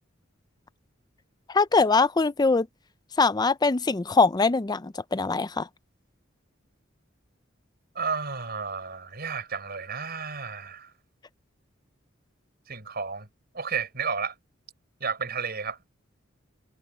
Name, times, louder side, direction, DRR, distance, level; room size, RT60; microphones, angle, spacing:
voice 1, 1.5-2.7 3.2-5.7, left 4 dB, 20° left, 0.5 m, -22 dB
voice 2, 7.9-10.9 12.7-13.3 13.5-14.3 15.0-15.8, right 5 dB, 55° right, 6.5 m, -32 dB
head